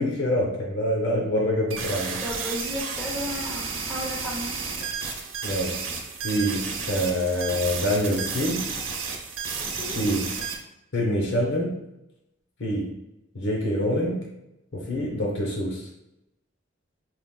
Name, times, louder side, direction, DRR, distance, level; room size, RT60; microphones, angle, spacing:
voice 1, 0.0-2.2 5.4-5.9 6.2-8.7 9.9-10.3 10.9-11.8 12.6-13.0 13.3-14.3 14.7-15.9, equal, 65° left, -1 dB, 0.9 m, -26 dB
sound 1, 1.7-10.6, right 5 dB, 90° right, 0.8 m, -32 dB
voice 2, 2.2-4.7 9.6-10.1, equal, 5° right, -8 dB, 0.9 m, -34 dB
4.7 x 3.6 x 2.3 m, 0.91 s
head